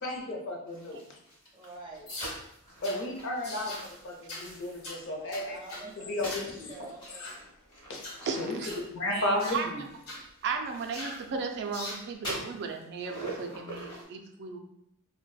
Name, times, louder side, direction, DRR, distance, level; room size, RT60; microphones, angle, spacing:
voice 1, 0.0-1.0 2.8-5.6 6.1-6.9 7.9-8.6 8.9-9.8, left 1 dB, 60° left, 0 dB, 0.7 m, -33 dB
sound 1, 0.7-5.0 5.5-11.8 12.1-14.0, right 1 dB, 25° left, 1.1 m, -45 dB
voice 2, 1.5-2.1 5.1-7.1, right 2 dB, 20° right, -3 dB, 0.7 m, -47 dB
sound 2, 2.1-2.4 2.8-3.0 3.4-3.9 4.3-4.5 4.8-5.0 5.3-5.9 6.3-6.5 7.0-7.4 7.9-8.2 8.6-8.9 9.4-9.6 10.1-10.2 10.9-11.2 11.7-12.0, left 1 dB, 85° left, 1.1 m, -41 dB
voice 3, 8.3-8.8 9.1-9.7 10.4-14.6, right 5 dB, 55° right, 4 dB, 0.3 m, -35 dB
3.9 x 2.2 x 2.3 m, 0.75 s
head